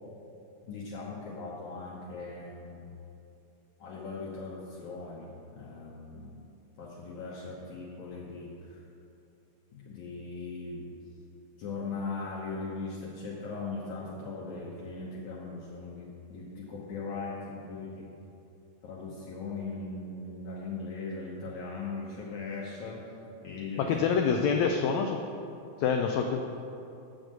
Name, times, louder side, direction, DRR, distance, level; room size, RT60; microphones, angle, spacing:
voice 1, 0.6-2.9 3.8-6.4 6.8-8.8 9.7-10.9 11.6-18.1 18.8-23.1 23.4-23.9, left 3 dB, 65° left, -6 dB, 2.4 m, -39 dB
voice 2, 23.8-25.2 25.8-26.4, left 6 dB, 85° left, 3 dB, 1.6 m, -26 dB
7.1 x 6.5 x 7.5 m, 2.7 s
omnidirectional pair, 3.8 m